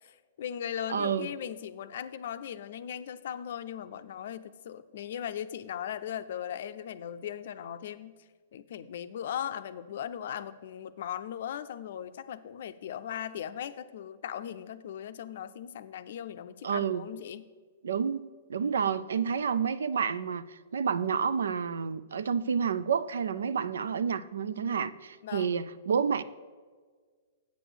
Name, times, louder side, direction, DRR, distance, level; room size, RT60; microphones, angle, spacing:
voice 1, 0.0-8.1 8.5-17.4 25.2-25.6, left 9 dB, 60° left, 0.5 m, -38 dB
voice 2, 0.9-1.3 16.6-17.0 17.8-18.2 18.5-20.4 20.7-26.2, right 6 dB, 75° right, 0.4 m, -29 dB
8.3 x 6.1 x 6.6 m
hypercardioid pair, 115°, 0 cm